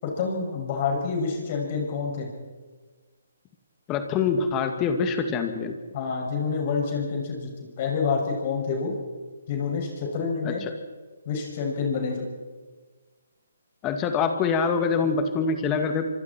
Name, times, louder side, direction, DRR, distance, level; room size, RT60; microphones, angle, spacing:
voice 1, 0.0-2.3 5.9-8.9 9.5-10.6 11.3-12.3, left 5 dB, 40° left, 0 dB, 7.0 m, -28 dB
voice 2, 3.9-5.8 10.4-10.7 13.8-16.0, left 5 dB, 20° left, 6 dB, 2.3 m, -25 dB
25.5 x 25.5 x 4.6 m, 1.4 s
figure-of-eight pair, 140°, 0 cm